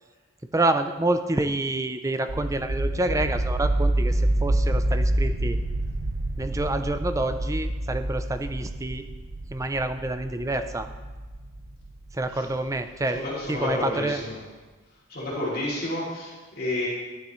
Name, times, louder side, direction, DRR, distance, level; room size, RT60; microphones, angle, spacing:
voice 1, 0.5-5.6 6.4-9.0 9.5-10.9 12.1-14.2, right 2 dB, 15° right, 9 dB, 0.4 m, -28 dB
sound 1, 2.3-13.0, right 1 dB, 90° right, 1.1 m, -27 dB
voice 2, 13.1-14.3 15.1-16.9, left 2 dB, 45° left, -6 dB, 2.7 m, -30 dB
12.0 x 10.0 x 3.1 m, 1.3 s
head